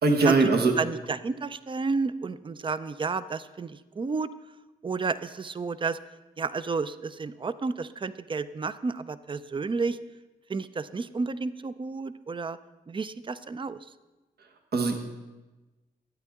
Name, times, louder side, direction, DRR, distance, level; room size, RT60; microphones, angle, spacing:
voice 1, 0.0-0.7 14.7-15.0, right 3 dB, 70° right, 3 dB, 1.2 m, -21 dB
voice 2, 0.8-4.3 4.8-6.0 6.4-10.0 10.5-12.6 12.9-13.8, right 4 dB, 30° right, 14 dB, 0.4 m, -31 dB
12.0 x 8.9 x 3.6 m, 1.1 s
cardioid pair, 50°, 17 cm